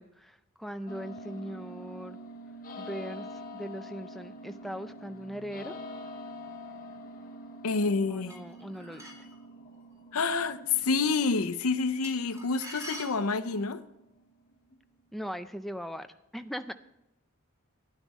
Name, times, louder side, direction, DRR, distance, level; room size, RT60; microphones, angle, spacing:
voice 1, 0.0-2.2 2.8-5.7 8.1-9.1 15.1-16.7, equal, ahead, 0.4 m, -40 dB
sound 1, 0.9-14.8, left 1 dB, 40° left, 0.9 m, -46 dB
voice 2, 7.6-8.4 10.1-13.8, left 4 dB, 80° left, 0.7 m, -28 dB
sound 2, 8.3-9.3 12.0-13.7, equal, 15° right, 3.5 m, -44 dB
11.5 x 11.0 x 4.2 m
head